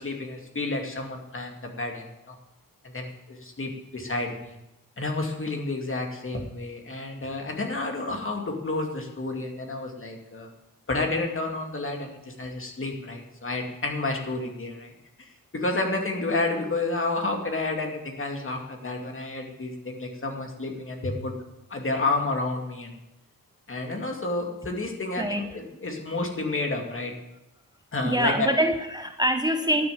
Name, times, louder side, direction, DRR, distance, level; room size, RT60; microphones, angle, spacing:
voice 1, 0.0-2.4 2.8-4.6 5.0-10.5 10.9-14.9 15.2-21.3 21.7-23.0 23.7-27.1 27.9-28.5, left 2 dB, 35° left, 2 dB, 2.4 m, -30 dB
voice 2, 25.2-25.6 28.0-29.9, right 1 dB, 10° right, 6 dB, 0.7 m, -25 dB
12.0 x 6.8 x 9.1 m, 0.93 s
wide cardioid pair, 100°, 35 cm